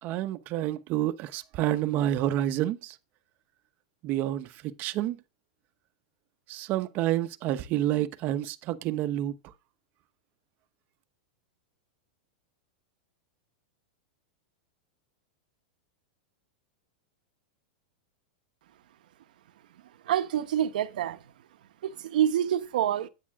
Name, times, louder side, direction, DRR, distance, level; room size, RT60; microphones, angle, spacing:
voice 1, 0.0-3.0 4.0-5.2 6.5-9.3, right 13 dB, 40° right, 0.9 m, -29 dB
voice 2, 20.0-21.3 21.8-23.1, right 10 dB, 75° right, 1.0 m, -27 dB
9.9 x 8.6 x 3.6 m
supercardioid pair, 135°, 5 cm